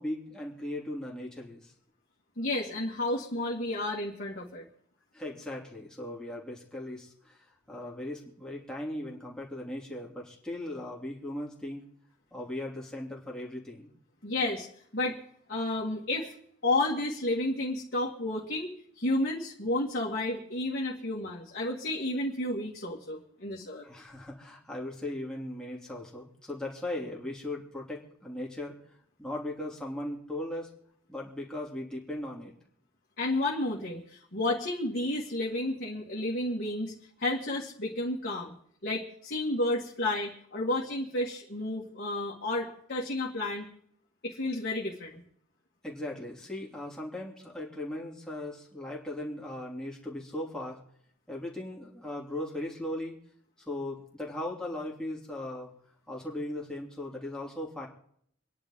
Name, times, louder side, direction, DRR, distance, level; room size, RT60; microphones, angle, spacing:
voice 1, 0.0-1.7 5.1-11.8 12.3-13.9 23.8-28.8 29.2-30.7 31.1-32.5 45.8-50.8 51.3-53.1 53.7-55.7 56.1-57.9, left 1 dB, 5° left, -4 dB, 2.9 m, -38 dB
voice 2, 2.4-4.6 14.2-14.7 14.9-15.2 15.5-16.3 16.6-23.9 33.2-36.9 37.2-38.5 38.8-43.7 44.2-45.2, left 2 dB, 50° left, -4 dB, 2.1 m, -31 dB
26.5 x 10.5 x 3.8 m, 0.65 s
head